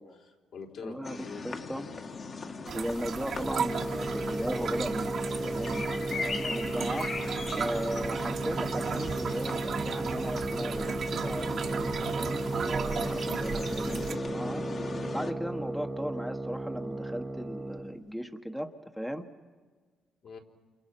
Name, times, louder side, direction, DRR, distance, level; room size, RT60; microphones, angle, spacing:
voice 1, 0.0-2.0 20.2-20.4, left 5 dB, 70° left, 0 dB, 3.9 m, -45 dB
voice 2, 0.8-1.9 2.5-7.1 7.6-14.6 15.1-19.3, equal, ahead, 6 dB, 1.3 m, -37 dB
sound 1, 1.0-15.3, left 4 dB, 45° left, 2.0 m, -39 dB
sound 2, 2.7-14.1, right 6 dB, 60° right, 2.0 m, -36 dB
sound 3, 3.4-18.0, right 2 dB, 20° right, 1.1 m, -35 dB
29.0 x 28.5 x 6.0 m, 1.5 s
cardioid pair, 90°, 0 cm